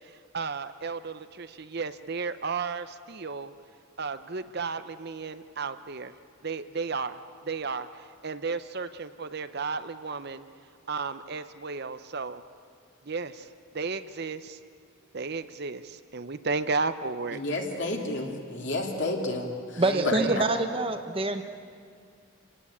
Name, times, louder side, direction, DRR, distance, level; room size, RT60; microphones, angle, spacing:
voice 1, 0.3-3.5 4.0-6.1 6.4-7.2 7.4-10.4 10.9-12.4 13.1-13.5 13.7-14.6 15.1-17.4 19.9-20.4, right 4 dB, 50° right, 11 dB, 0.7 m, -33 dB
voice 2, 17.3-20.4, left 2 dB, 55° left, 1 dB, 3.0 m, -31 dB
voice 3, 19.8-21.4, right 2 dB, 25° right, 7 dB, 1.0 m, -26 dB
28.0 x 18.5 x 8.6 m, 2.2 s
head